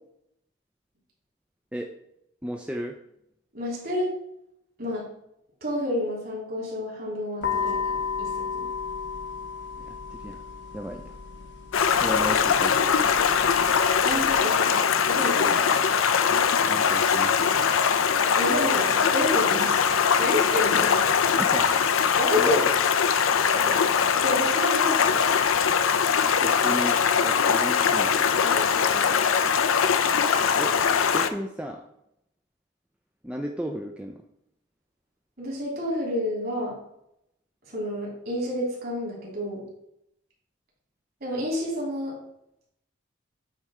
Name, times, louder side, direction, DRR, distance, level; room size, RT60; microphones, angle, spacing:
voice 1, 2.4-3.0 9.8-10.4 10.7-11.2 12.0-13.1 16.7-17.8 21.4-22.6 23.5-23.9 26.4-28.4 30.6-30.7 31.1-31.8 33.2-34.2, equal, 5° right, 2 dB, 0.4 m, -35 dB
voice 2, 3.5-4.1 4.8-5.1 5.6-8.7 14.0-15.8 18.3-19.8 20.2-21.0 22.2-22.7 24.1-25.4 28.4-29.4 35.4-36.8 37.7-39.6 41.2-42.2, left 1 dB, 50° right, -3 dB, 2.8 m, -30 dB
sound 1, 7.4-14.4, left 6 dB, 60° left, 0.9 m, -34 dB
Stream, 11.7-31.3, left 6 dB, 90° left, 0.5 m, -22 dB
8.8 x 3.3 x 4.8 m, 0.77 s
head